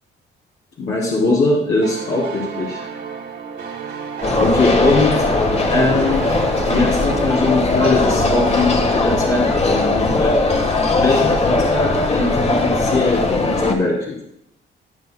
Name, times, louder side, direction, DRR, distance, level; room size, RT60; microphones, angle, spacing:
voice 1, 0.8-2.9 4.4-5.2 5.7-6.3 6.7-10.4 11.0-14.1, left 2 dB, 70° left, -6 dB, 2.9 m, -20 dB
sound 1, 1.8-9.3, right 6 dB, 65° right, 2.4 m, -32 dB
sound 2, 4.2-13.7, left 2 dB, 35° left, 1.5 m, -19 dB
19.5 x 6.6 x 2.3 m, 0.74 s
cardioid pair, 90°, 20 cm